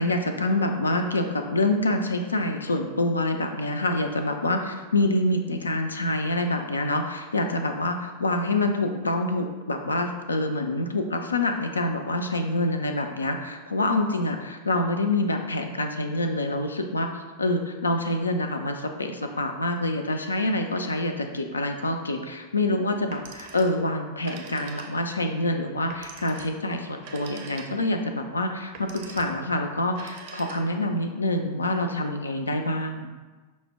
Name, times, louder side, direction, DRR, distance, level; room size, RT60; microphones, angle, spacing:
voice 1, 0.0-17.1 17.4-33.1, left 2 dB, 75° left, 5 dB, 0.3 m, -26 dB
Telephone, 23.0-23.8 24.1-25.2 25.9-28.0 28.6-29.4 29.9-30.9, right 5 dB, 50° right, 0.5 m, -44 dB
5.5 x 2.0 x 3.3 m, 1.3 s
figure-of-eight pair, 90°, 0 cm